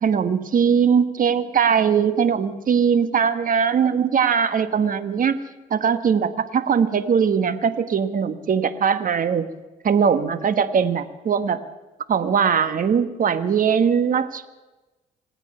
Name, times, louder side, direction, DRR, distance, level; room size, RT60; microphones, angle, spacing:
voice 1, 0.0-5.4 5.7-9.5 9.8-11.6 12.1-14.5, right 7 dB, 50° right, 11 dB, 1.4 m, -20 dB
26.5 x 9.0 x 5.6 m, 1.1 s
supercardioid pair, 55°, 18 cm